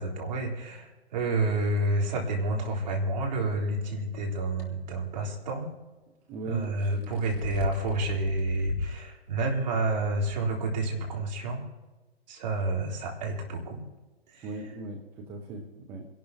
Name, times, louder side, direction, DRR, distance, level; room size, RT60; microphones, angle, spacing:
voice 1, 0.0-5.7 6.4-11.6 12.3-13.8 14.3-14.5, right 2 dB, 40° right, 0 dB, 3.8 m, -29 dB
sound 1, 4.6-4.7 6.6-9.0 9.5-9.6 10.3-10.4, left 3 dB, 35° left, 2.7 m, -36 dB
voice 2, 6.3-7.2 14.4-16.1, right 2 dB, 5° right, 2 dB, 0.5 m, -38 dB
26.5 x 12.0 x 3.0 m, 1.1 s
figure-of-eight pair, 135°, 32 cm